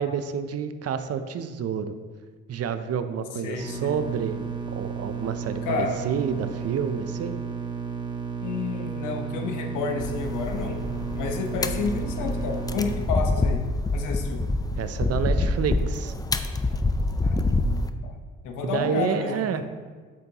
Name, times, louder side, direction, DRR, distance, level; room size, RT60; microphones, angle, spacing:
voice 1, 0.0-1.9 2.5-4.4 4.7-7.4 14.8-16.1 18.6-19.6, right 7 dB, 55° right, 10 dB, 0.6 m, -29 dB
voice 2, 3.4-3.9 5.6-6.0 8.4-10.8 11.1-13.6 13.9-14.4 17.2-18.1 18.4-19.6, left 5 dB, 90° left, 3 dB, 1.0 m, -30 dB
sound 1, 3.6-13.0, right 6 dB, 15° right, 1.2 m, -33 dB
sound 2, 10.0-17.9, left 2 dB, 15° left, 0.4 m, -26 dB
8.3 x 6.8 x 2.9 m, 1.5 s
cardioid pair, 90°, 30 cm